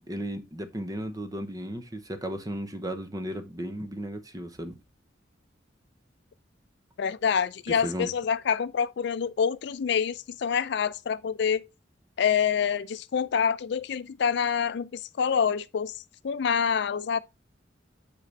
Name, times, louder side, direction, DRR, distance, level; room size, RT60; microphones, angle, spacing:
voice 1, 0.1-4.8 7.7-8.1, equal, 20° right, 0.8 m, -35 dB
voice 2, 7.0-11.6 12.2-16.0 16.2-17.2, left 7 dB, 65° left, 0.4 m, -26 dB
7.6 x 5.0 x 3.2 m
head